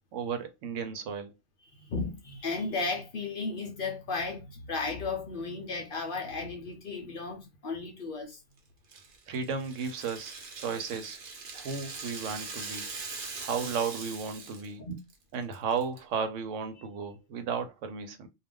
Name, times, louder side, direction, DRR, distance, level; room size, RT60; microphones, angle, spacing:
voice 1, 0.1-1.3 9.3-11.2 11.5-12.9 13.4-14.8 15.3-18.3, right 6 dB, 85° right, 1.0 m, -34 dB
voice 2, 1.8-8.4 14.8-14.9, left 3 dB, 55° left, 0.7 m, -34 dB
Rattle (instrument), 8.9-14.7 15.0-15.1 15.5-16.0, right 4 dB, 50° right, 0.8 m, -41 dB
2.4 x 2.2 x 3.5 m
omnidirectional pair, 1.3 m